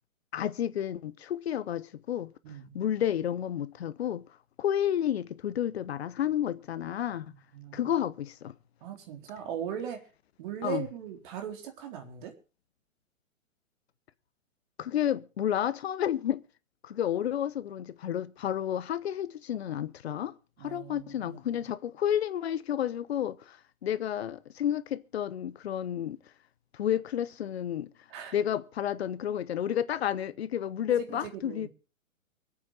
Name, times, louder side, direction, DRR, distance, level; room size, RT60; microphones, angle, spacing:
voice 1, 0.3-2.3 2.7-4.2 4.6-7.3 7.7-8.5 10.6-10.8 14.8-16.4 16.8-20.3 20.6-26.2 26.7-27.9 28.3-31.7, left 10 dB, 50° left, 1.1 m, -31 dB
voice 2, 2.4-2.8 7.5-8.0 8.8-10.0 10.4-12.3 20.6-21.6 28.1-28.4 31.1-31.7, right 9 dB, 35° right, 4.0 m, -39 dB
23.5 x 8.7 x 4.9 m
figure-of-eight pair, 120°, 41 cm